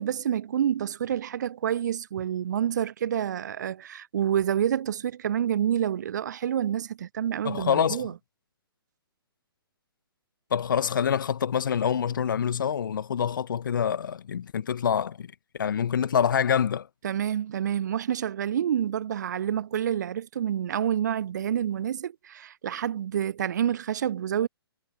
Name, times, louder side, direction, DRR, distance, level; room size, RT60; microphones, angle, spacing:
voice 1, 0.0-8.1 17.0-24.5, right 9 dB, 45° right, 0.4 m, -28 dB
voice 2, 7.4-8.1 10.5-15.3 15.5-16.9, left 8 dB, 50° left, 1.6 m, -26 dB
figure-of-eight pair, 125°, 13 cm